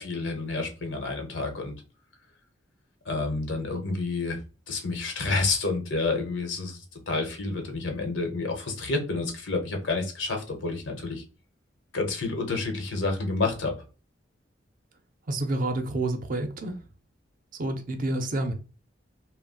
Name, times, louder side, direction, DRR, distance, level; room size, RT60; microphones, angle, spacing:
voice 1, 0.0-1.7 3.0-4.4 4.7-11.2 11.9-13.8, left 3 dB, 85° left, 0.9 m, -29 dB
voice 2, 15.3-16.8 17.6-18.5, right 2 dB, 45° right, 0.5 m, -29 dB
2.4 x 2.1 x 3.7 m
head